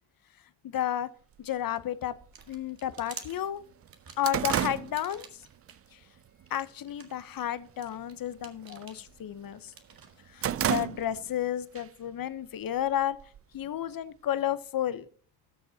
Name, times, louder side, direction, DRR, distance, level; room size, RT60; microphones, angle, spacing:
voice 1, 0.6-1.1 1.4-2.1 2.5-3.6 4.2-5.3 6.5-9.7 10.3-13.2 13.5-15.1, left 11 dB, 45° left, 14 dB, 0.9 m, -32 dB
sound 1, 1.4-1.5 2.4-2.5 2.9-3.0 3.4-5.8 6.2-6.5 6.9-7.4 7.7-8.0 8.3-9.5 9.9-11.4 11.8-11.9 12.8-13.7, right 10 dB, 30° right, 0.4 m, -32 dB
sound 2, 2.2-5.7 6.2-10.8, right 6 dB, 50° right, 1.8 m, -50 dB
18.0 x 6.6 x 2.8 m, 0.43 s
hypercardioid pair, 50°, 47 cm